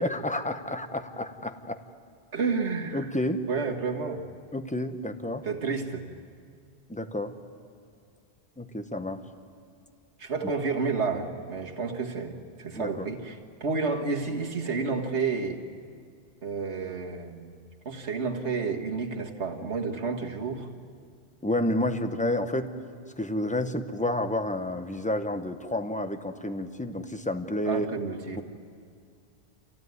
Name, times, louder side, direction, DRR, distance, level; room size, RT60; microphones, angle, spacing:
voice 1, 0.0-1.8 2.9-3.4 4.5-5.5 6.9-7.3 8.6-9.2 12.7-13.1 21.4-22.7 23.2-27.9, left 1 dB, 5° left, 8 dB, 0.9 m, -30 dB
voice 2, 2.3-3.1 3.5-4.3 5.4-6.1 10.2-15.6 16.4-17.5 17.9-20.7 27.7-28.4, right 4 dB, 90° right, 2 dB, 2.0 m, -30 dB
26.5 x 16.0 x 9.5 m, 2.2 s
omnidirectional pair, 1.1 m